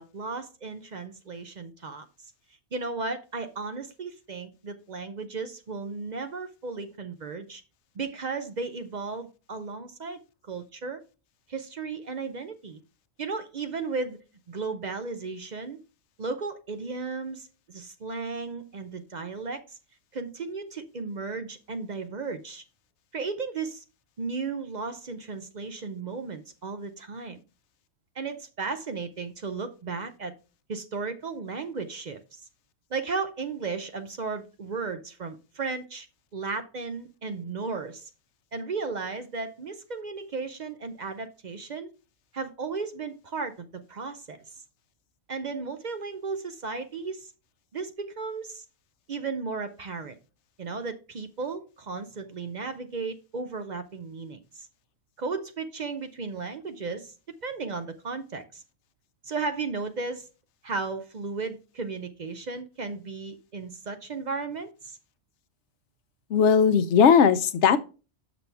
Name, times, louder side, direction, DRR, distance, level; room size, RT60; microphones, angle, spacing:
voice 1, 0.0-2.1 2.7-7.6 7.9-10.2 10.5-11.0 11.5-12.8 13.2-14.2 14.5-15.8 16.2-19.8 20.1-22.6 23.1-23.8 24.2-27.4 28.2-30.3 30.7-32.4 32.9-36.1 36.3-38.1 38.5-41.9 42.3-44.4 45.3-47.3 47.7-48.6 49.1-50.2 50.6-54.7 55.2-57.1 57.4-58.6 59.2-60.3 60.6-65.0, right 4 dB, 50° right, 0.6 m, -35 dB
voice 2, 66.3-67.8, left 7 dB, 85° left, 0.9 m, -18 dB
7.0 x 6.0 x 3.4 m
omnidirectional pair, 1.2 m